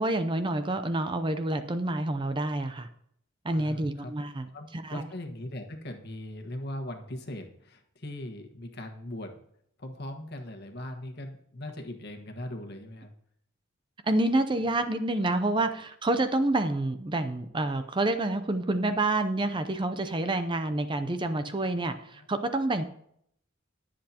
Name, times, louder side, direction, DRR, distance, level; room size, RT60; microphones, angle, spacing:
voice 1, 0.0-2.9 3.4-5.0 14.0-22.8, right 2 dB, 25° right, 9 dB, 0.6 m, -28 dB
voice 2, 3.5-4.1 4.5-9.4 9.8-13.1 22.1-22.3, left 1 dB, 55° left, 4 dB, 1.5 m, -40 dB
21.0 x 7.6 x 2.9 m, 0.70 s
head